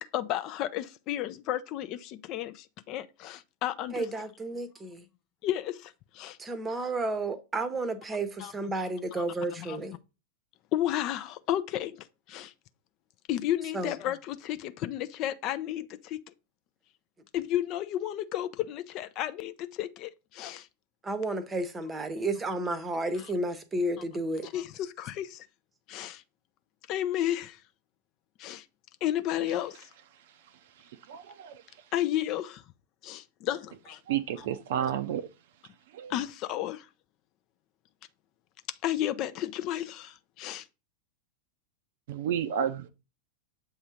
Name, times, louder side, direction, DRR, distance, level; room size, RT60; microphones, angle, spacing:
voice 1, 0.0-4.1 5.4-6.4 8.4-8.5 9.1-9.2 9.6-9.8 10.7-12.5 13.3-16.2 17.3-20.7 24.4-25.4 25.9-26.2 26.9-27.6 28.4-28.6 29.0-29.9 31.9-32.6 33.0-34.0 34.4-34.5 34.9-35.0 36.1-36.9 38.8-40.6, left 12 dB, 40° left, 0.4 m, -32 dB
voice 2, 3.9-5.0 6.4-10.0 13.7-13.9 21.0-24.5, right 2 dB, 15° right, 0.8 m, -32 dB
voice 3, 31.1-31.5 34.1-35.3 36.0-36.1 42.1-42.9, right 9 dB, 55° right, 0.5 m, -31 dB
7.5 x 2.7 x 4.8 m
figure-of-eight pair, 90°, 0 cm